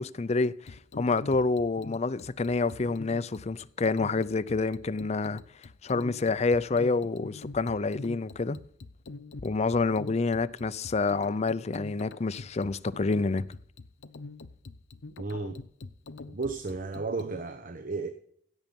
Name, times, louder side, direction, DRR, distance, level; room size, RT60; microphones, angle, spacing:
voice 1, 0.0-5.4 5.8-8.6 9.4-13.4, left 3 dB, 35° left, 0.5 m, -28 dB
sound 1, 0.7-17.4, left 3 dB, 90° left, 0.7 m, -45 dB
voice 2, 15.2-15.6 16.3-18.1, right 3 dB, 50° right, 0.9 m, -33 dB
16.0 x 7.2 x 5.3 m
head